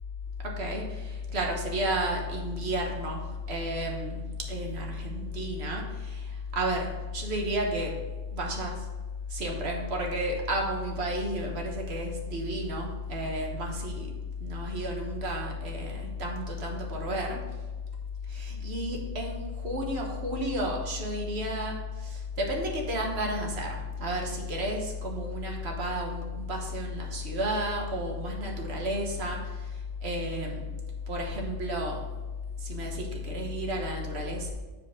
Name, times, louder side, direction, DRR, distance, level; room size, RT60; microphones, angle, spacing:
voice 1, 0.4-3.2 3.5-7.9 8.3-8.8 9.3-14.1 14.4-17.4 18.3-29.6 30.0-30.7 31.1-32.0 32.6-34.5, equal, 60° right, 0 dB, 1.5 m, -32 dB
7.9 x 4.6 x 5.1 m, 1.2 s
omnidirectional pair, 1.3 m